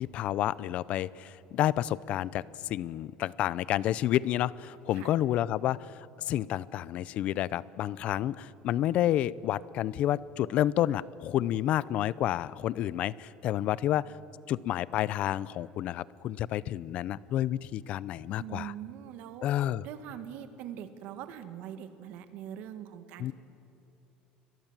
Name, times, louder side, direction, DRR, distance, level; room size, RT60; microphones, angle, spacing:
voice 1, 0.0-14.1 14.5-18.7 19.4-19.9 23.2-23.3, left 12 dB, 40° left, 20 dB, 0.5 m, -30 dB
voice 2, 18.4-19.5 19.8-23.3, right 10 dB, 55° right, 9 dB, 1.9 m, -42 dB
30.0 x 22.5 x 7.4 m, 2.9 s
cardioid pair, 180°, 3 cm